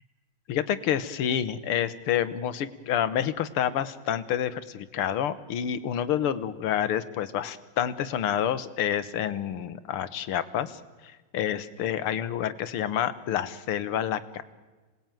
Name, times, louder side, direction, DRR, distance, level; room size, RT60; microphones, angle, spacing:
voice 1, 0.5-14.4, left 9 dB, 80° left, 14 dB, 2.0 m, -28 dB
26.5 x 19.0 x 9.1 m, 1.3 s
omnidirectional pair, 2.4 m